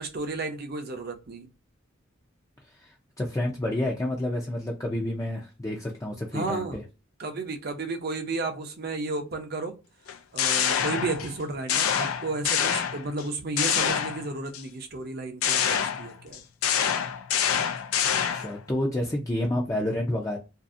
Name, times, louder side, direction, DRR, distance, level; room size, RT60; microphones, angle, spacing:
voice 1, 0.0-1.5 6.3-6.8 7.2-9.8 10.3-16.4, right 3 dB, 50° right, 0.6 m, -33 dB
voice 2, 2.8-6.8 18.3-20.4, left 1 dB, 15° left, 0.5 m, -29 dB
sound 1, 10.1-11.4 11.7-13.2 13.6-14.6 15.4-18.6, left 8 dB, 90° left, 0.4 m, -26 dB
2.6 x 2.5 x 2.4 m
head